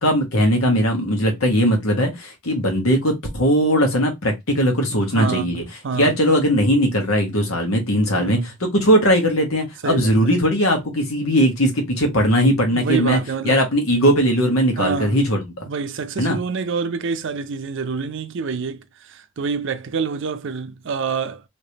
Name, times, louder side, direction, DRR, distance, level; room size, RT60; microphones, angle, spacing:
voice 1, 0.0-5.6 5.9-13.2 13.4-15.7 16.2-16.4, equal, 90° left, 1.4 m, -19 dB
voice 2, 4.9-6.1 8.2-8.5 9.8-10.1 12.7-13.6 14.8-15.2 15.6-21.4, right 5 dB, 60° right, 0.5 m, -27 dB
3.3 x 2.9 x 2.9 m
head